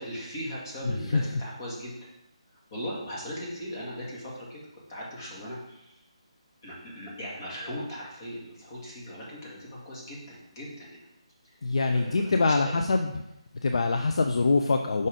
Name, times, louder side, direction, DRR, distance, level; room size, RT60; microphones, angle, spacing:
voice 1, 0.0-2.0 2.7-4.6 4.9-6.0 6.6-11.0 11.9-12.7, equal, 35° left, -4 dB, 2.1 m, -38 dB
voice 2, 0.8-1.2 11.6-13.2 13.6-15.1, left 3 dB, 60° left, 5 dB, 0.4 m, -24 dB
5.3 x 3.8 x 5.0 m, 0.88 s
figure-of-eight pair, 150°, 3 cm